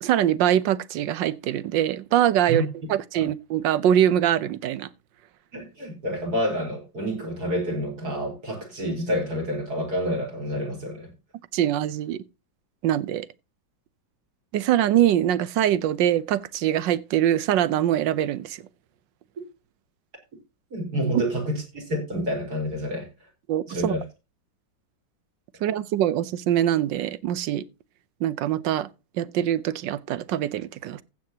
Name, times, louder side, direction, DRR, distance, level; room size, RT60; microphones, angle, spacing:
voice 1, 0.0-4.9 11.5-12.2 12.8-13.3 14.5-18.6 23.5-23.9 25.6-27.7 28.2-28.9 29.2-31.0, right 11 dB, 80° right, 1.4 m, -23 dB
voice 2, 5.5-11.1 20.7-23.1 23.7-24.0, equal, 55° right, 5.1 m, -28 dB
15.0 x 8.5 x 2.8 m
omnidirectional pair, 2.0 m